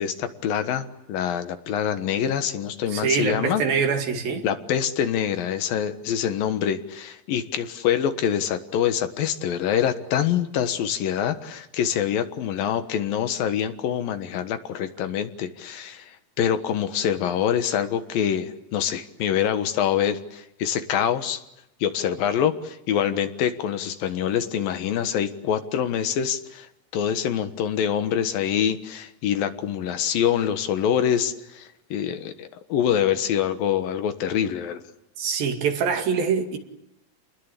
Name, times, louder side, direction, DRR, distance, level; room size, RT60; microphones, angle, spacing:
voice 1, 0.0-3.6 4.4-16.1 16.4-21.4 21.8-26.7 26.9-34.8, left 9 dB, 80° left, 3.2 m, -25 dB
voice 2, 2.9-4.5 35.2-36.6, right 6 dB, 80° right, 4.1 m, -24 dB
29.0 x 21.0 x 8.4 m
omnidirectional pair, 4.0 m